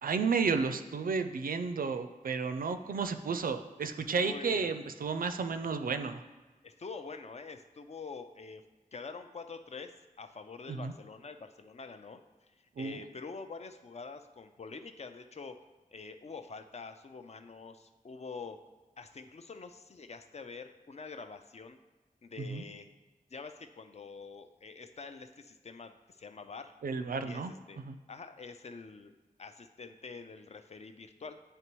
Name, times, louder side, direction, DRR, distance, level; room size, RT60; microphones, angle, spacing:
voice 1, 0.0-6.2 10.7-10.9 12.8-13.0 22.4-22.6 26.8-28.0, right 5 dB, 75° right, 9 dB, 0.4 m, -32 dB
voice 2, 4.2-4.7 6.6-8.6 8.9-18.6 19.0-21.8 22.2-22.9 23.3-26.8 27.2-27.8 28.1-31.4, left 4 dB, 50° left, 8 dB, 0.4 m, -46 dB
9.3 x 3.3 x 3.0 m, 1.3 s
wide cardioid pair, 85°, 15 cm